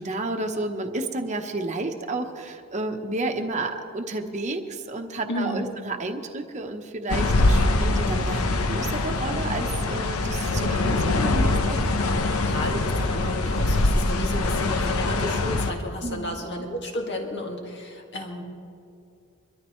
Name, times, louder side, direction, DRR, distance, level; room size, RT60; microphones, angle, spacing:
voice 1, 0.0-11.8 16.0-16.3, right 2 dB, 35° right, 4 dB, 1.1 m, -31 dB
voice 2, 5.3-5.8 11.6-11.9 12.5-18.4, left 1 dB, 55° left, 1 dB, 2.1 m, -32 dB
sound 1, 7.1-15.7, left 2 dB, 85° left, 0.9 m, -23 dB
23.5 x 13.0 x 3.2 m, 2.4 s
head